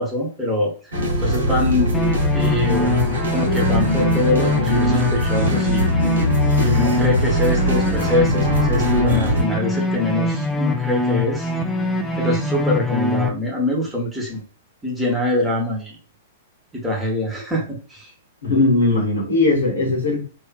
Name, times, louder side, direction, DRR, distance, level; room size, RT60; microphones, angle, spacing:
voice 1, 0.0-1.9 2.3-3.0 3.3-5.9 6.6-11.5 12.2-14.4 14.8-16.0 16.7-18.1, left 1 dB, 5° right, -2 dB, 0.9 m, -24 dB
sound 1, 0.9-9.4, equal, 70° right, 0.8 m, -21 dB
sound 2, 1.9-13.3, left 2 dB, 15° left, 0.4 m, -23 dB
voice 2, 18.4-20.2, left 2 dB, 70° left, 0 dB, 1.0 m, -18 dB
2.6 x 2.4 x 2.3 m, 0.38 s
figure-of-eight pair, 105°, 0 cm